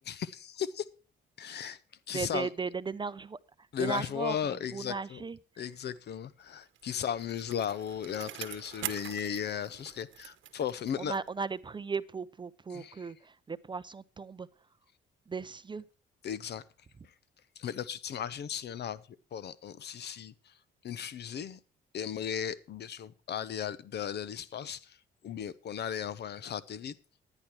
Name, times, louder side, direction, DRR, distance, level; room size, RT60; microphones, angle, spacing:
voice 1, 0.0-0.9 1.4-1.8 2.1-2.5 3.7-5.2 5.6-11.1 12.7-13.1 16.2-16.6 17.0-17.1 17.6-20.6 20.8-21.6 21.9-25.0 25.2-27.0, left 8 dB, 60° left, 18 dB, 0.7 m, -36 dB
voice 2, 2.1-3.4 3.8-4.4 4.7-5.4 11.0-14.5 15.3-15.8, right 5 dB, 25° right, 16 dB, 0.5 m, -36 dB
Bicycle, 6.5-11.4 11.8-11.9, right 12 dB, 75° right, 1.0 m, -44 dB
10.5 x 10.0 x 4.5 m, 0.37 s
cardioid pair, 90°, 20 cm